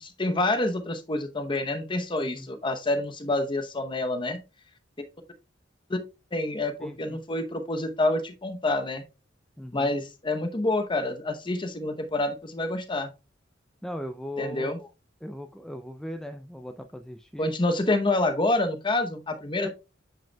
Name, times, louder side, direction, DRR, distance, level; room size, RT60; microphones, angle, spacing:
voice 1, 0.0-4.4 5.9-6.0 6.3-9.0 9.7-13.1 14.4-14.8 17.4-19.7, left 2 dB, 25° left, 8 dB, 0.8 m, -27 dB
voice 2, 2.2-2.5 6.8-7.2 9.6-9.9 13.8-14.9 15.2-17.5 19.6-19.7, left 1 dB, 5° left, 5 dB, 0.3 m, -38 dB
8.9 x 5.2 x 2.2 m, 0.28 s
head